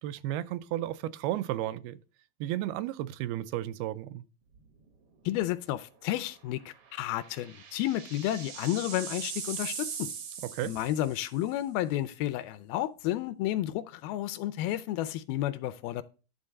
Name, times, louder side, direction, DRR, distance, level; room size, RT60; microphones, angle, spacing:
voice 1, 0.0-2.0 2.4-4.2 10.4-10.8, right 13 dB, 85° right, 2.4 m, -33 dB
sound 1, 4.5-4.9 5.2-5.3 6.8-11.4, right 7 dB, 70° right, 1.3 m, -40 dB
voice 2, 5.3-10.1 10.6-16.0, left 13 dB, 80° left, 2.3 m, -31 dB
11.0 x 3.8 x 6.4 m
omnidirectional pair, 4.5 m